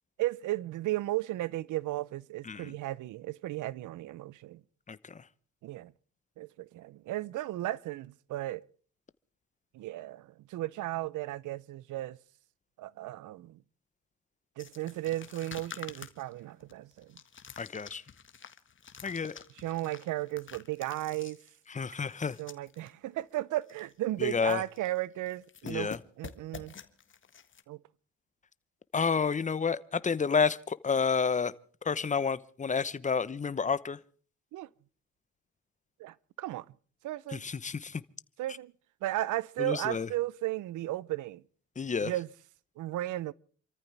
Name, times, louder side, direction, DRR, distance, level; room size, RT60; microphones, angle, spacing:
voice 1, 0.2-4.6 5.6-5.9 6.4-8.6 9.7-12.2 12.8-13.6 14.6-17.2 19.5-21.4 22.4-26.7 27.7-27.8 34.5-34.7 36.0-36.7 37.0-37.4 38.4-38.7 39.0-41.4 42.0-42.3 42.8-43.3, right 16 dB, 80° right, 0.7 m, -35 dB
voice 2, 4.9-5.2 17.6-18.0 19.0-19.3 21.7-22.4 24.2-24.6 25.6-26.0 28.9-31.5 31.8-34.0 37.3-38.0 39.6-40.1 41.8-42.1, left 5 dB, 25° left, 0.9 m, -30 dB
sound 1, 14.6-22.9 23.2-23.3 23.6-23.9 24.2-25.0 25.3-27.6, left 7 dB, 40° left, 1.7 m, -49 dB
28.5 x 14.0 x 3.4 m
cardioid pair, 90°, 30 cm